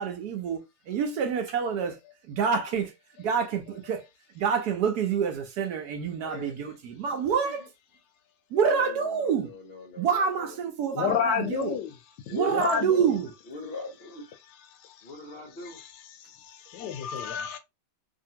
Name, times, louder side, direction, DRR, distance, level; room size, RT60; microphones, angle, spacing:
voice 1, 0.0-2.0 2.3-4.1 4.3-7.7 8.5-9.5 10.0-11.8 12.3-13.3, right 6 dB, 70° right, 1.1 m, -27 dB
voice 2, 6.2-6.5 7.4-7.5 8.6-10.6 11.1-11.2 12.3-13.2 13.5-14.3 15.0-15.8, left 3 dB, 50° left, 0.7 m, -40 dB
voice 3, 10.9-11.9 12.3-13.0 14.8-15.1 15.6-15.9 16.3-17.6, left 7 dB, 80° left, 1.2 m, -30 dB
2.8 x 2.7 x 2.7 m
omnidirectional pair, 1.9 m